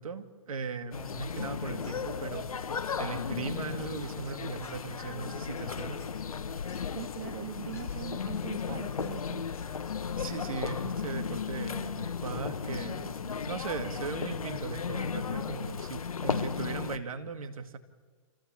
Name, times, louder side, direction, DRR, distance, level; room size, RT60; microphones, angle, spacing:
voice 1, 0.0-2.5 3.0-6.0 10.2-17.8, right 5 dB, 80° right, 8 dB, 2.2 m, -38 dB
sound 1, 0.9-17.0, left 6 dB, 90° left, 1.0 m, -35 dB
sound 2, 1.2-2.8 3.1-10.2, left 4 dB, 15° left, 4.7 m, -55 dB
voice 2, 6.9-9.4, right 14 dB, 40° right, 9 dB, 1.1 m, -41 dB
27.0 x 15.5 x 8.8 m, 1.5 s
hypercardioid pair, 135°, 18 cm